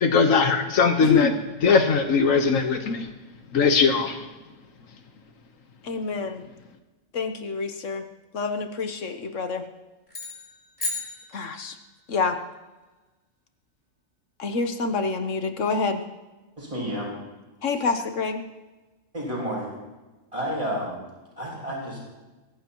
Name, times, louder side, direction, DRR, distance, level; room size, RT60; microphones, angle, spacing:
voice 1, 0.0-1.3 1.6-3.0 3.5-4.2, left 5 dB, 90° left, 5 dB, 1.6 m, -20 dB
voice 2, 1.0-1.3 5.8-6.4 7.1-8.0 8.3-9.6 11.3-11.7 12.1-12.4 14.4-16.0 17.6-18.4, left 5 dB, 70° left, 6 dB, 1.4 m, -27 dB
sound 1, 10.1-12.0, left 3 dB, 35° left, 6.0 m, -35 dB
voice 3, 16.6-17.2 19.1-19.7 20.3-21.0 21.4-22.0, equal, 25° right, -4 dB, 6.5 m, -30 dB
23.0 x 15.0 x 3.0 m, 1.2 s
omnidirectional pair, 1.3 m